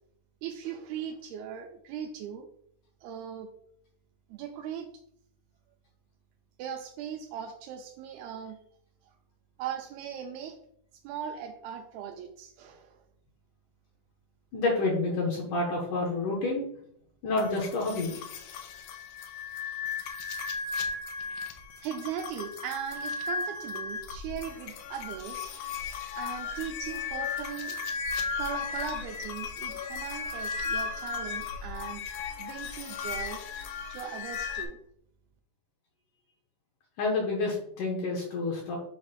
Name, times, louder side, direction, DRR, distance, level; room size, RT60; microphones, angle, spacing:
voice 1, 0.4-2.5 3.0-3.5 4.3-4.9 6.6-8.6 9.6-10.6 11.0-13.0 21.8-25.6 26.2-27.8 28.4-32.0 32.4-33.4 33.9-34.8, right 8 dB, 80° right, 4 dB, 2.3 m, -39 dB
voice 2, 14.5-16.6 17.2-18.2 37.0-38.8, left 2 dB, 70° left, -2 dB, 2.1 m, -29 dB
sound 1, 17.4-34.7, left 5 dB, 85° left, 2.9 m, -36 dB
7.0 x 2.4 x 5.5 m, 0.68 s
omnidirectional pair, 4.7 m